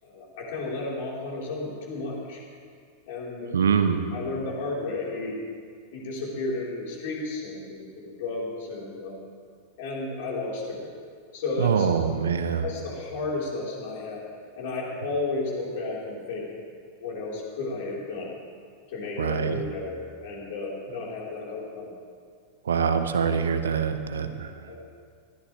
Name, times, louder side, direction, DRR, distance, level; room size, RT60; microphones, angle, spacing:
voice 1, 0.0-2.4 3.1-3.5 4.1-5.3 5.9-9.2 9.8-10.8 11.3-11.9 12.6-14.2 14.6-16.5 17.0-18.3 18.9-21.9 24.7-24.8, left 3 dB, 55° left, -4 dB, 4.5 m, -33 dB
voice 2, 3.5-4.0 11.6-12.6 19.2-19.6 22.6-24.5, right 6 dB, 65° right, 8 dB, 1.0 m, -24 dB
21.0 x 15.5 x 3.4 m, 2.1 s
figure-of-eight pair, 90°, 0 cm